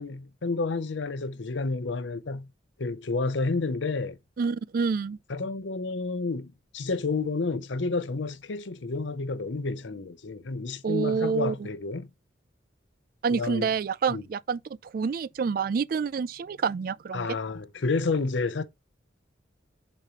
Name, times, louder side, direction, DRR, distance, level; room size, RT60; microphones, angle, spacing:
voice 1, 0.0-2.5 2.8-4.2 5.3-6.5 6.7-12.1 13.3-13.7 14.1-14.2 17.1-18.6, left 3 dB, 85° left, 0.7 m, -30 dB
voice 2, 4.4-5.2 10.8-11.7 13.2-14.6 14.9-17.3, right 5 dB, 50° right, 0.3 m, -27 dB
8.1 x 4.1 x 3.0 m
head